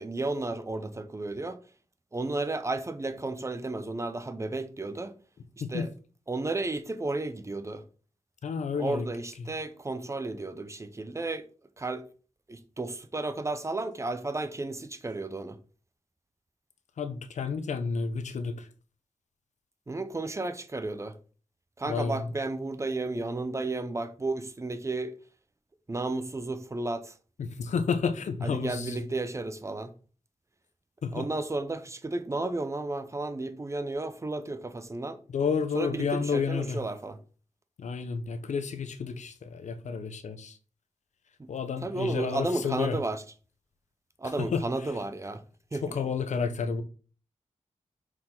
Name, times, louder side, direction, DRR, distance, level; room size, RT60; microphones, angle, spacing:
voice 1, 0.0-1.6 2.1-5.1 5.7-5.9 6.3-7.8 8.8-11.5 11.8-12.1 12.5-15.6 19.9-21.1 21.8-25.2 25.9-27.2 28.4-29.9 31.1-35.2 35.7-37.2 41.4-41.5 41.8-43.2 44.2-45.4 45.7-46.0, right 2 dB, 25° right, 0.7 m, -33 dB
voice 2, 8.4-9.1 9.4-9.5 17.0-18.7 21.9-22.3 27.4-29.0 31.0-31.3 35.3-36.8 37.8-40.6 41.5-43.0 44.4-44.6 45.8-46.8, left 5 dB, 75° left, 0.8 m, -30 dB
5.9 x 4.8 x 3.8 m
wide cardioid pair, 85°, 12 cm